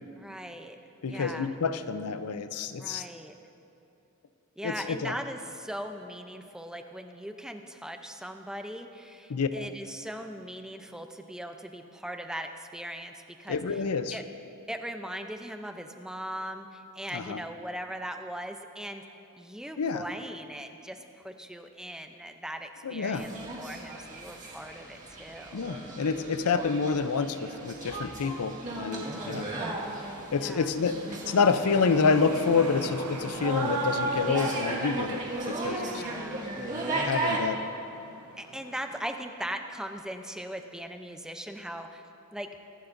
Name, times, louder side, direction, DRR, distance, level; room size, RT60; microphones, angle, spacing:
voice 1, 0.2-0.8 1.1-1.5 2.8-3.3 4.6-13.8 14.1-14.2 14.7-19.0 19.4-23.3 23.6-25.6 28.9-29.4 30.4-30.7 35.5-36.5 37.1-37.4 38.4-42.0 42.3-42.5, equal, 5° right, 5 dB, 0.6 m, -39 dB
voice 2, 1.0-3.0 4.6-5.2 9.3-9.6 13.5-14.2 17.1-17.4 19.8-20.0 22.8-23.2 25.5-29.5 30.3-31.0 31.3-35.2 35.5-36.0 37.0-37.6, left 5 dB, 85° left, 11 dB, 0.6 m, -28 dB
sound 1, 23.1-37.4, right 2 dB, 35° right, 1.7 m, -35 dB
sound 2, 23.9-39.0, right 2 dB, 80° right, 0.9 m, -45 dB
24.5 x 11.5 x 2.6 m, 2.8 s
head